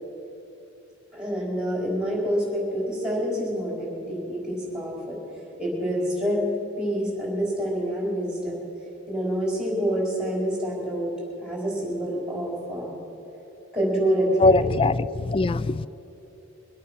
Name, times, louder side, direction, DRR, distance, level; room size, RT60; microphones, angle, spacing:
voice 1, 1.1-6.5 6.8-8.6 9.1-11.1 11.4-12.9 13.7-14.6, equal, 5° right, -4 dB, 4.6 m, -27 dB
voice 2, 14.4-15.9, left 3 dB, 25° left, 17 dB, 0.3 m, -21 dB
24.0 x 8.5 x 6.2 m, 3.0 s
head